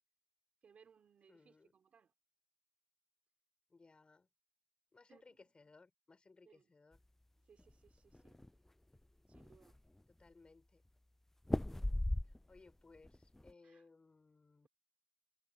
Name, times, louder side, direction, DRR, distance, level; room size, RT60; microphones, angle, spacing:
voice 1, 0.6-2.1 5.1-5.5 6.5-6.7 7.5-8.4 9.3-9.8 13.6-13.9, right 6 dB, 85° right, 3.9 m, -67 dB
voice 2, 1.3-1.7 3.7-4.3 4.9-7.0 10.2-10.8 12.5-14.7, left 3 dB, 50° left, 5.6 m, -63 dB
sound 1, 7.6-8.5 9.0-9.1 9.3-10.0 11.4-12.7 13.0-13.5, left 1 dB, 15° left, 0.3 m, -37 dB
cardioid pair, 45°, 2 cm